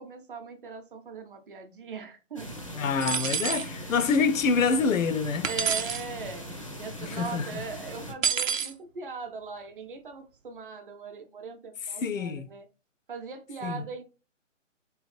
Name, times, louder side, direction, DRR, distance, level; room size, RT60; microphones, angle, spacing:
voice 1, 0.0-2.5 3.8-4.1 5.4-6.5 6.8-12.6 13.1-14.0, right 4 dB, 45° right, 0.7 m, -40 dB
sound 1, 2.4-8.1, left 1 dB, 30° left, 0.4 m, -40 dB
voice 2, 2.7-5.5 7.0-7.6 12.0-12.5 13.6-13.8, left 5 dB, 90° left, 0.6 m, -26 dB
sound 2, 3.0-3.7 5.4-6.0 8.2-8.7, right 7 dB, 85° right, 0.7 m, -28 dB
3.5 x 3.1 x 3.1 m
hypercardioid pair, 155°, 38 cm